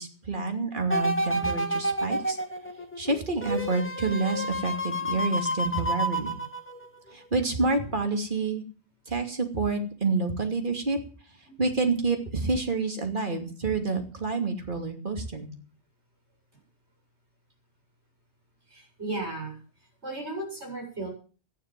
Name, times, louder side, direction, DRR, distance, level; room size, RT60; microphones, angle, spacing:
voice 1, 0.0-2.4 3.0-6.4 7.1-8.6 9.1-11.0 11.6-15.5, right 3 dB, 45° right, 4 dB, 2.9 m, -28 dB
sound 1, 0.9-7.1 7.6-7.7, right 1 dB, 10° left, 1.7 m, -30 dB
voice 2, 18.7-19.6 20.0-21.1, right 2 dB, 70° right, 1 dB, 8.3 m, -35 dB
14.5 x 10.5 x 7.6 m, 0.39 s
omnidirectional pair, 1.2 m